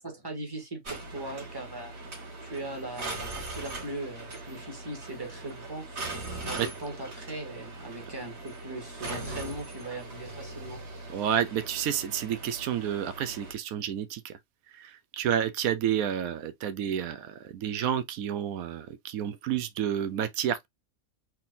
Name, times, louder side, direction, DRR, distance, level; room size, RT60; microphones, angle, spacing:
voice 1, 0.2-1.9 2.4-5.8 6.4-10.8, right 2 dB, 15° right, 2.0 m, -39 dB
sound 1, 0.8-13.5, right 2 dB, 75° right, 2.4 m, -40 dB
voice 2, 11.1-14.3 15.1-17.3 17.5-20.7, right 9 dB, 90° right, 1.1 m, -30 dB
4.4 x 3.8 x 2.6 m
omnidirectional pair, 1.4 m